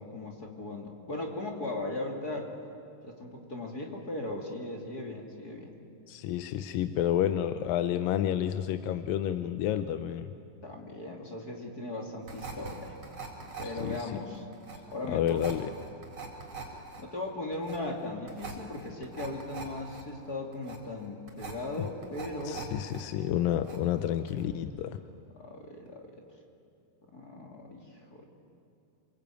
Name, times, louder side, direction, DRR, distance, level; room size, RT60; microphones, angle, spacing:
voice 1, 0.0-2.5 3.0-5.7 10.6-13.0 13.6-14.4 14.9-15.4 17.0-22.7 25.3-26.2 27.1-27.8 28.1-28.2, left 2 dB, 30° left, 1 dB, 2.7 m, -38 dB
voice 2, 6.1-10.3 13.6-14.1 15.1-15.7 21.8-21.9 22.5-25.0, left 11 dB, 85° left, 10 dB, 2.5 m, -30 dB
sound 1, 12.3-23.0 23.3-24.0 24.3-24.4, right 5 dB, 45° right, 5.3 m, -43 dB
28.0 x 22.0 x 9.2 m, 2.7 s
omnidirectional pair, 3.9 m